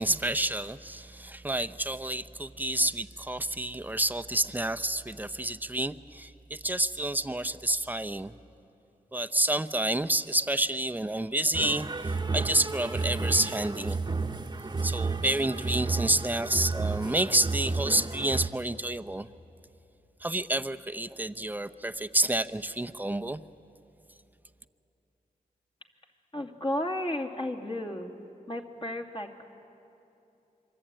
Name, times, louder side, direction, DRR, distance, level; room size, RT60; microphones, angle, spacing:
voice 1, 0.0-8.3 9.1-14.0 14.8-19.3 20.2-23.4, right 1 dB, 10° right, 12 dB, 0.8 m, -29 dB
sound 1, 11.5-18.5, right 3 dB, 30° right, 1.1 m, -32 dB
voice 2, 26.3-28.1 28.5-29.4, left 1 dB, 35° left, 1 dB, 2.6 m, -33 dB
26.0 x 24.0 x 9.0 m, 2.8 s
cardioid pair, 65°, 15 cm